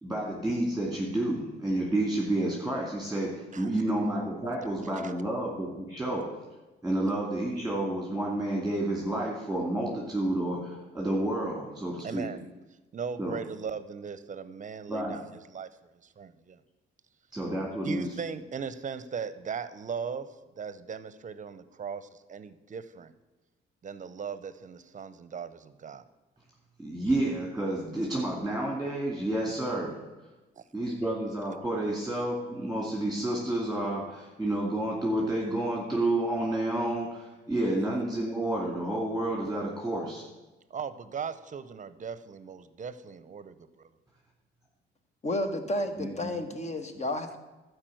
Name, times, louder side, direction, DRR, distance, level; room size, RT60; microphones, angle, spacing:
voice 1, 0.0-6.2 6.8-12.3 13.2-13.4 14.9-15.2 17.3-18.1 26.8-29.9 30.7-40.2 46.0-46.3, right 1 dB, ahead, -3 dB, 2.4 m, -30 dB
voice 2, 12.0-12.4 12.9-15.7 16.2-16.6 17.8-23.1 23.8-26.0 30.6-30.7 31.0-31.1 40.7-43.6, right 6 dB, 40° right, 14 dB, 0.7 m, -38 dB
voice 3, 45.2-47.4, left 1 dB, 35° left, 7 dB, 1.3 m, -31 dB
12.0 x 4.9 x 7.7 m, 1.1 s
cardioid pair, 90°, 20 cm